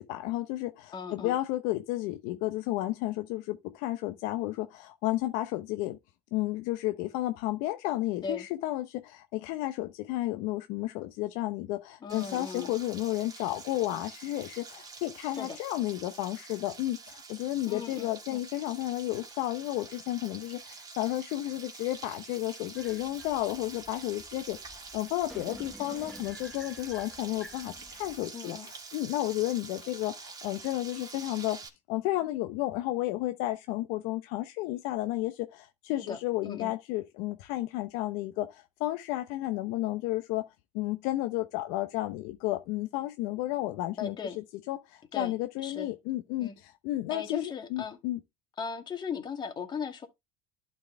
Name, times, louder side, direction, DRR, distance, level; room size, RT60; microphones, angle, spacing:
voice 1, 0.0-6.0 6.3-31.6 31.9-40.4 40.7-48.2, left 16 dB, 70° left, 0.8 m, -32 dB
voice 2, 0.9-1.4 8.2-8.5 12.0-12.7 15.4-15.6 17.7-18.4 28.3-28.7 36.0-36.2 36.4-36.7 44.0-44.4 45.1-45.3 45.6-45.9 46.4-46.6 47.1-48.0 48.6-50.1, left 6 dB, 30° left, 2.1 m, -37 dB
Frying (food), 12.1-31.7, right 4 dB, 25° right, 2.5 m, -47 dB
sound 1, 22.8-28.3, equal, ahead, 1.0 m, -50 dB
11.5 x 4.6 x 3.3 m
supercardioid pair, 115°, 14 cm